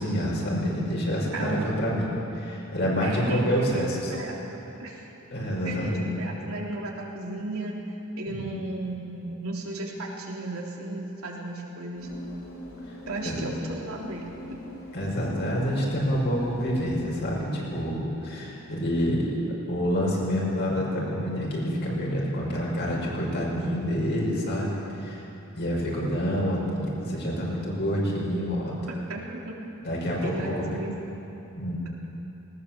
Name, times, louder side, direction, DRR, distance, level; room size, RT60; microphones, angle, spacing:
voice 1, 0.0-2.1 2.4-4.1 5.3-6.1 8.3-8.5 13.2-13.5 14.9-19.3 19.7-25.2 25.5-28.7 29.8-30.8 31.6-31.8, equal, 55° left, -3 dB, 5.6 m, -27 dB
voice 2, 1.3-1.9 3.0-5.1 5.6-7.8 8.2-12.1 13.1-14.3 28.9-29.6 30.2-30.9, right 2 dB, 85° right, -2 dB, 3.5 m, -35 dB
sound 1, 12.0-17.4, left 1 dB, 75° left, 4.6 m, -42 dB
19.0 x 19.0 x 7.5 m, 2.9 s
head